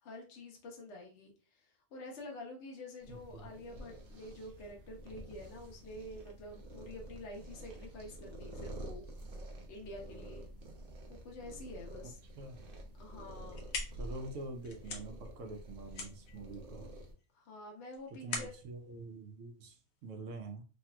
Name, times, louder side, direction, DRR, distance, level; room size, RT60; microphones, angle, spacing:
voice 1, 0.0-9.1 9.7-10.5 11.1-12.2 13.0-13.6 17.3-18.6, left 1 dB, 60° left, 0 dB, 1.0 m, -48 dB
sound 1, 3.0-17.1, right 1 dB, 55° right, 0.7 m, -49 dB
voice 2, 3.1-3.5 12.0-12.6 14.0-16.9 18.2-20.7, right 2 dB, 70° right, 4 dB, 1.0 m, -46 dB
sound 2, 13.3-20.1, left 4 dB, 90° left, 1.1 m, -45 dB
3.2 x 2.8 x 2.2 m, 0.34 s
omnidirectional pair, 1.4 m